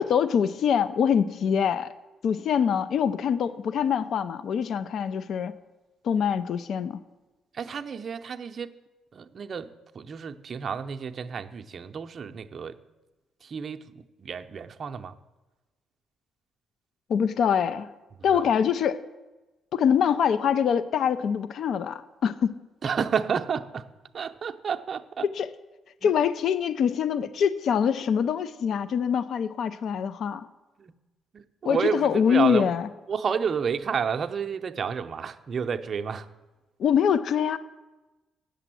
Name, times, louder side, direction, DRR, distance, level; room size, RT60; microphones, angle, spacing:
voice 1, 0.0-1.9 2.2-5.5 6.0-7.0 17.1-17.9 18.2-19.0 19.7-22.6 25.3-25.5 26.0-30.5 31.6-32.9 36.8-37.6, left 7 dB, 65° left, 14 dB, 0.5 m, -24 dB
voice 2, 7.5-8.8 9.1-12.8 13.4-13.9 14.2-15.1 18.3-18.5 22.8-23.9 24.1-25.3 26.0-26.1 30.8-30.9 31.3-32.7 33.1-36.3, right 6 dB, 45° right, 7 dB, 0.6 m, -30 dB
8.1 x 6.8 x 7.6 m, 1.1 s
cardioid pair, 90°, 0 cm